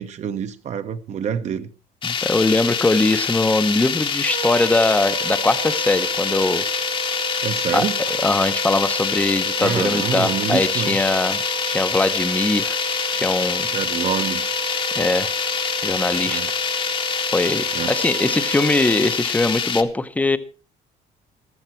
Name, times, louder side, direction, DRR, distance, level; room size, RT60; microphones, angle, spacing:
voice 1, 0.0-1.7 7.4-8.0 9.6-11.0 13.7-14.5 16.3-16.5 17.7-17.9, right 8 dB, 45° right, 1.0 m, -26 dB
sound 1, 2.0-19.8, left 6 dB, 30° left, 1.0 m, -25 dB
voice 2, 2.0-6.6 7.7-7.8 8.2-12.8 13.1-13.7 14.9-15.3 15.8-16.4 17.3-20.4, left 2 dB, 10° left, 0.7 m, -21 dB
Wind instrument woodwind instrument, 4.2-19.2, right 7 dB, 65° right, 2.0 m, -33 dB
14.5 x 13.0 x 4.5 m
cardioid pair, 160°, 17 cm